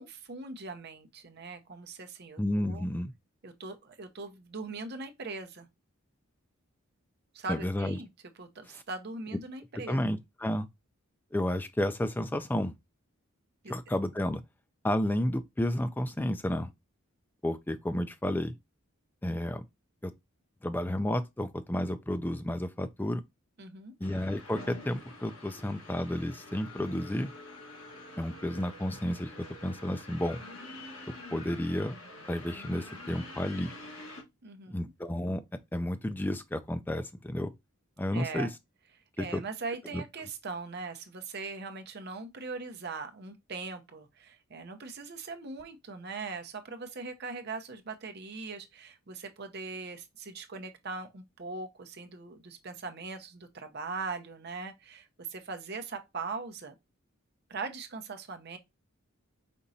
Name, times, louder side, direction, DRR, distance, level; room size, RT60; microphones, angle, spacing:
voice 1, 0.0-2.9 3.4-5.7 7.3-8.1 8.4-10.0 13.6-13.7 23.6-23.9 34.4-34.8 38.1-38.5 39.2-56.7 57.5-58.6, right 4 dB, 50° right, 0.7 m, -40 dB
voice 2, 2.4-3.1 7.5-8.0 8.7-8.8 9.9-10.7 11.3-12.7 13.7-14.4 14.8-16.7 17.4-18.5 19.2-19.6 20.0-20.1 20.6-23.2 24.0-27.3 28.2-30.4 31.1-31.9 32.3-33.7 34.7-35.4 35.7-37.5 38.0-38.5 39.2-39.4 39.9-40.0, left 1 dB, 10° left, 0.3 m, -31 dB
sound 1, 24.0-34.2, left 2 dB, 65° left, 1.4 m, -47 dB
5.2 x 2.9 x 2.6 m
head